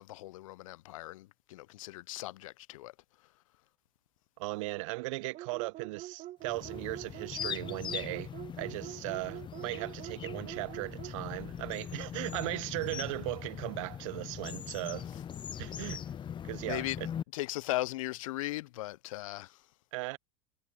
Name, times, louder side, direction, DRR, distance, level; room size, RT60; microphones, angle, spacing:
voice 1, 0.0-2.9 15.5-15.6 16.7-17.0 17.3-19.6, left 17 dB, 80° left, 0.4 m, -38 dB
voice 2, 4.4-8.3 8.6-15.1 15.6-16.0 16.4-17.1 19.9-20.2, right 23 dB, 70° right, 0.7 m, -37 dB
sound 1, 5.3-11.2, right 14 dB, 50° right, 1.6 m, -45 dB
sound 2, 6.4-17.2, left 9 dB, 30° left, 0.6 m, -41 dB
hypercardioid pair, 90°, 17 cm